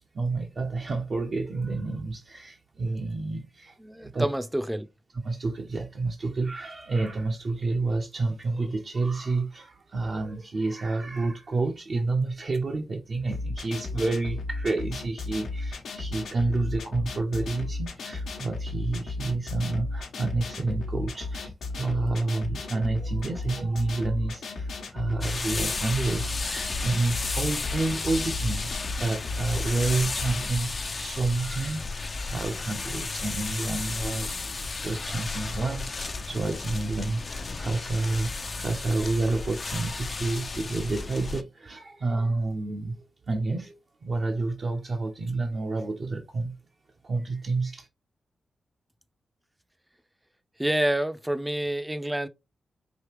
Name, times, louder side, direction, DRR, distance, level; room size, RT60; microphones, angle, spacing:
voice 1, 0.1-4.3 5.2-46.6 47.0-47.9, right 3 dB, 60° right, 0.8 m, -29 dB
voice 2, 3.8-4.9 50.6-52.3, right 1 dB, 10° right, 0.6 m, -27 dB
sound 1, 13.3-30.5, left 3 dB, 85° left, 1.1 m, -34 dB
sound 2, 25.2-41.4, left 3 dB, 50° left, 0.6 m, -33 dB
5.0 x 2.8 x 3.1 m
cardioid pair, 50°, 0 cm